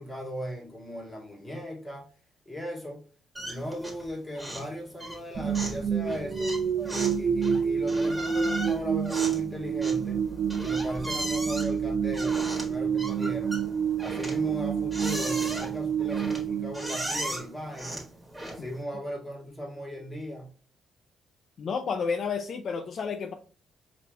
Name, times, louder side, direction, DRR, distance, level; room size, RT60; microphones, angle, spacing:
voice 1, 0.0-2.0 2.5-3.0 3.4-6.6 6.9-10.3 10.6-13.6 14.0-18.0 18.5-20.5, equal, 20° left, -1 dB, 1.9 m, -37 dB
sound 1, 3.3-4.1 4.3-4.7 5.0-18.8, right 1 dB, 5° right, 1.6 m, -37 dB
sound 2, 5.4-17.5, right 7 dB, 45° right, 0.5 m, -28 dB
voice 2, 21.6-23.3, left 5 dB, 55° left, 7 dB, 0.4 m, -31 dB
5.0 x 3.3 x 2.3 m, 0.39 s
cardioid pair, 90°, 0 cm